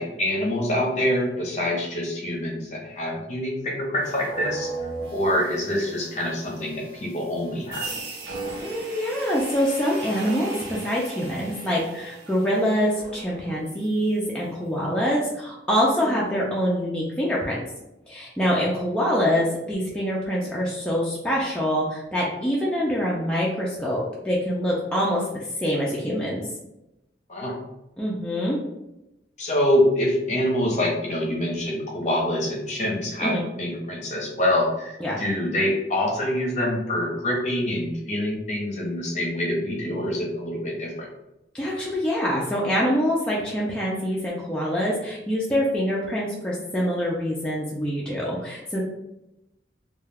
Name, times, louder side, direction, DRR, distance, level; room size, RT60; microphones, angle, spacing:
voice 1, 0.0-4.7 5.1-7.9 16.0-16.2 27.3-27.5 29.4-41.1, left 1 dB, 40° left, -2 dB, 0.7 m, -25 dB
sound 1, 4.0-14.1, right 3 dB, 80° right, 0.6 m, -37 dB
voice 2, 8.6-17.6 18.1-26.4 28.0-28.6 33.2-33.4 35.0-35.2 41.5-48.8, equal, 5° left, -6 dB, 0.3 m, -25 dB
2.3 x 2.2 x 3.3 m, 0.91 s
head